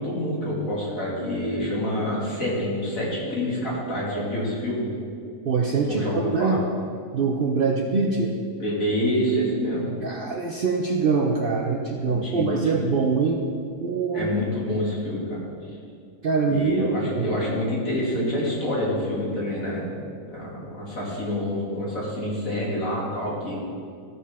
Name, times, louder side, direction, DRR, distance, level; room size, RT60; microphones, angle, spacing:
voice 1, 0.0-4.8 5.8-6.6 8.6-9.9 12.0-12.8 14.1-15.4 16.5-19.9 20.2-23.5, equal, 65° left, -6 dB, 2.7 m, -27 dB
voice 2, 5.4-6.6 7.1-8.3 10.0-13.4 13.8-14.3 16.2-17.3, right 4 dB, 55° right, 1 dB, 0.6 m, -24 dB
13.5 x 6.6 x 3.6 m, 2.4 s
omnidirectional pair, 1.5 m